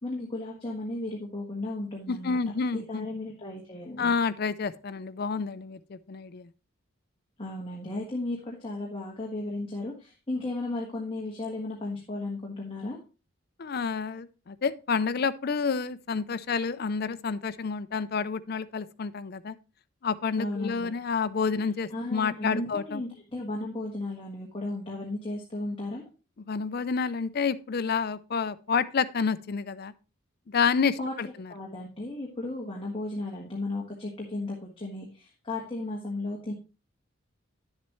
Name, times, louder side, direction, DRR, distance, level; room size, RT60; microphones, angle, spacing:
voice 1, 0.0-2.4 2.7-4.1 7.4-13.0 20.4-20.9 21.9-26.0 31.0-36.5, left 2 dB, 25° left, 1.5 m, -35 dB
voice 2, 2.1-3.1 4.0-6.5 13.6-19.6 20.0-23.0 26.5-29.9 30.5-31.3, left 5 dB, 45° left, 0.4 m, -29 dB
10.5 x 7.4 x 3.0 m
head